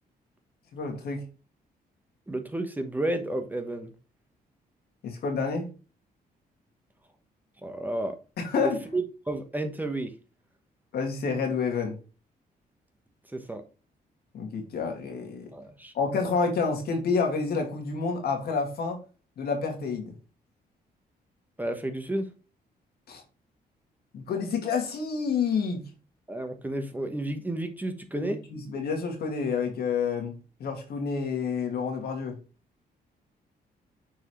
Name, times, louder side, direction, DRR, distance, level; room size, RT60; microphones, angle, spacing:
voice 1, 0.7-1.2 5.0-5.7 8.4-8.8 10.9-12.0 14.3-15.5 15.9-19.0 19.4-20.1 23.1-23.2 24.1-25.8 28.1-30.3 30.6-32.4, left 5 dB, 75° left, 2.1 m, -29 dB
voice 2, 2.3-3.9 7.6-8.2 8.6-10.1 13.3-13.6 15.5-15.9 21.6-22.3 26.3-28.4, right 1 dB, 10° right, 1.1 m, -31 dB
6.4 x 4.7 x 3.1 m
cardioid pair, 110°, 16 cm